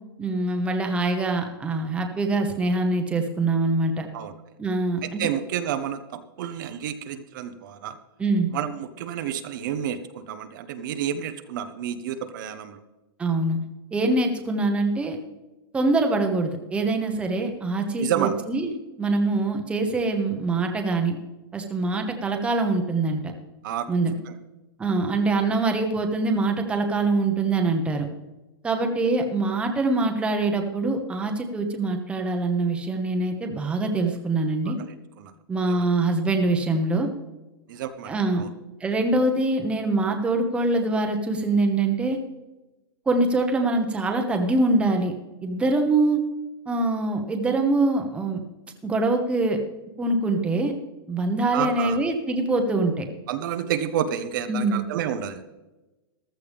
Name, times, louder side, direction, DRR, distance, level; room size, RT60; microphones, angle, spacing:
voice 1, 0.2-4.1 4.6-5.2 8.2-8.5 13.2-13.6 13.9-15.2 15.7-18.7 19.0-21.2 21.5-23.2 23.9-24.1 24.8-28.1 28.6-34.8 35.5-37.1 38.1-38.4 38.8-42.2 43.1-45.1 45.4-46.2 46.7-48.4 48.8-49.6 50.0-50.7 51.1-53.0 54.5-54.8, right 2 dB, 10° right, 4 dB, 1.1 m, -24 dB
voice 2, 5.0-8.0 8.5-12.8 18.0-18.4 23.6-23.9 24.2-24.3 34.7-35.3 35.7-35.8 37.7-38.5 51.5-52.0 53.3-55.4, right 9 dB, 55° right, 9 dB, 1.0 m, -30 dB
15.0 x 12.5 x 3.5 m, 1.1 s
hypercardioid pair, 155°, 13 cm